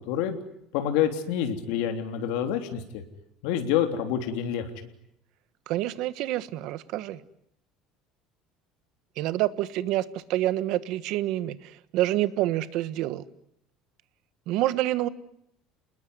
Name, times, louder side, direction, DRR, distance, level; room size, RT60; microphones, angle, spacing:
voice 1, 0.1-0.4 0.7-3.0 3.4-4.7, left 9 dB, 80° left, 6 dB, 3.3 m, -27 dB
voice 2, 5.7-7.2 9.2-10.0 10.3-13.2 14.5-15.1, right 15 dB, 60° right, 14 dB, 1.4 m, -27 dB
30.0 x 20.5 x 9.6 m, 0.77 s
cardioid pair, 170°, 0 cm